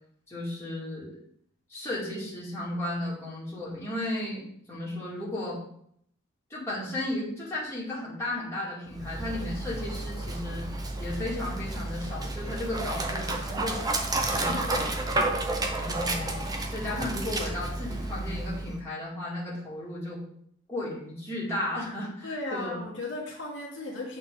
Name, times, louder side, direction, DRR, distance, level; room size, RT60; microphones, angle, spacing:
voice 1, 0.3-1.2 1.7-4.4 4.7-5.6 6.5-10.7 11.0-13.8 14.3-14.9 15.8-20.2 20.7-22.8, left 1 dB, 15° left, -7 dB, 2.0 m, -34 dB
Dog, 8.9-18.8, right 2 dB, 20° right, 0.6 m, -31 dB
voice 2, 22.2-24.2, left 2 dB, 65° left, -3 dB, 1.5 m, -35 dB
7.4 x 4.0 x 3.6 m, 0.68 s
head